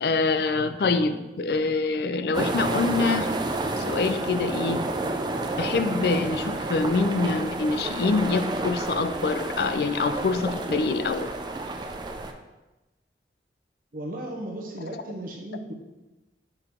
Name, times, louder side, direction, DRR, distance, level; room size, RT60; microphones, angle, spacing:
voice 1, 0.0-3.3 3.8-4.8 5.6-11.3, left 3 dB, 60° left, 11 dB, 0.4 m, -25 dB
sound 1, 2.3-12.3, right 2 dB, 25° right, 0.4 m, -30 dB
voice 2, 13.9-15.7, right 1 dB, 50° right, 0 dB, 0.9 m, -35 dB
6.7 x 3.9 x 4.4 m, 1.1 s
head